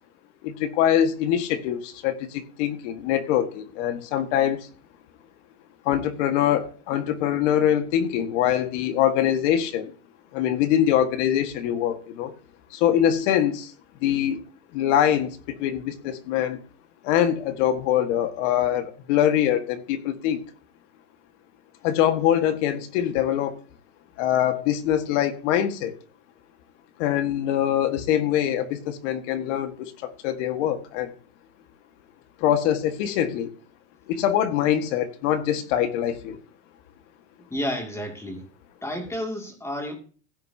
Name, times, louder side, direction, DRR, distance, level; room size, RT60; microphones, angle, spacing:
voice 1, 0.4-4.7 5.9-9.9 10.3-12.3 12.7-13.7 14.0-14.4 14.7-16.6 17.0-20.4 21.8-23.6 24.2-26.0 27.0-31.1 32.4-33.5 34.1-36.4, left 10 dB, 70° left, 1.8 m, -23 dB
voice 2, 37.5-38.4 38.8-39.9, equal, 5° left, 2.5 m, -31 dB
16.0 x 9.2 x 2.8 m
supercardioid pair, 155°, 37 cm